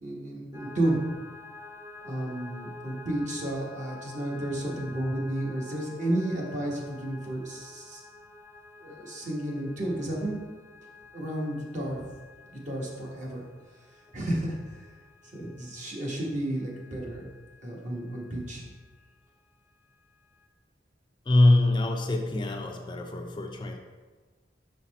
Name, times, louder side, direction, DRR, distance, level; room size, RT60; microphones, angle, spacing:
voice 1, 0.0-1.1 2.0-8.0 8.8-10.4 11.1-12.0 12.5-13.5 14.1-14.6 15.3-17.3 17.6-18.6, right 1 dB, 45° right, -3 dB, 1.3 m, -32 dB
sound 1, 0.5-19.2 19.7-20.5, left 3 dB, 20° right, 0.8 m, -50 dB
voice 2, 21.3-23.8, left 2 dB, 25° left, 3 dB, 0.4 m, -24 dB
6.3 x 4.2 x 4.1 m, 1.4 s
head